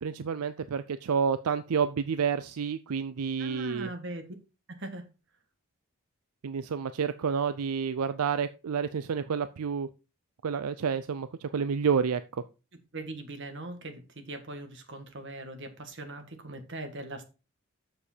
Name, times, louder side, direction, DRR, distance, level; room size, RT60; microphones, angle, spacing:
voice 1, 0.0-3.9 6.4-9.9 10.4-12.4, right 6 dB, 80° right, 0.5 m, -29 dB
voice 2, 3.4-4.3 4.7-5.1 12.9-17.2, right 2 dB, 55° right, 1.6 m, -40 dB
7.2 x 6.8 x 4.4 m
head